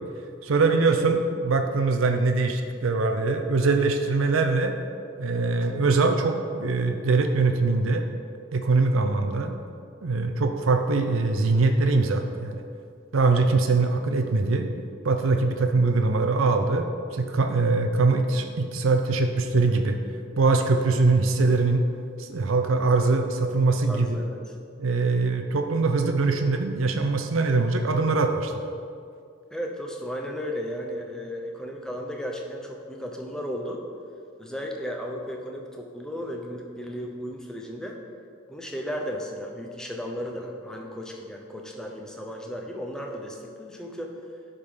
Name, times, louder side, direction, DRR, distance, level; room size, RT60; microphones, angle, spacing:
voice 1, 0.4-4.7 5.2-8.1 8.5-9.5 10.0-12.6 13.1-14.7 15.0-20.0 20.4-21.8 22.2-24.2 24.8-28.5, right 3 dB, 80° right, 5 dB, 0.5 m, -22 dB
voice 2, 23.9-24.4 29.5-33.8 34.4-38.0 38.5-44.2, equal, 5° left, 1 dB, 0.6 m, -35 dB
10.5 x 3.8 x 5.0 m, 2.4 s
head